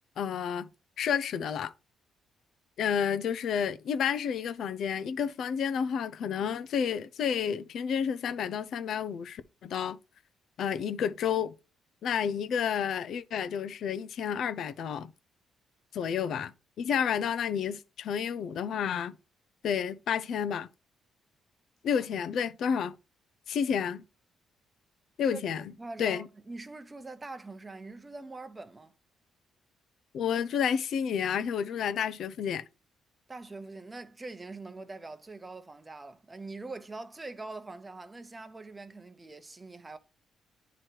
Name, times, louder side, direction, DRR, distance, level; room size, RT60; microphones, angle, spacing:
voice 1, 0.2-0.7 1.0-1.7 2.8-10.0 10.6-11.5 12.0-15.1 15.9-16.5 16.8-19.1 19.6-20.7 21.8-22.9 23.5-24.0 25.2-25.6 26.0-26.3 30.1-32.6, left 7 dB, 70° left, 0.5 m, -30 dB
voice 2, 25.8-28.9 33.3-40.0, right 3 dB, 25° right, 0.8 m, -43 dB
8.8 x 3.1 x 4.5 m
supercardioid pair, 65°, 0 cm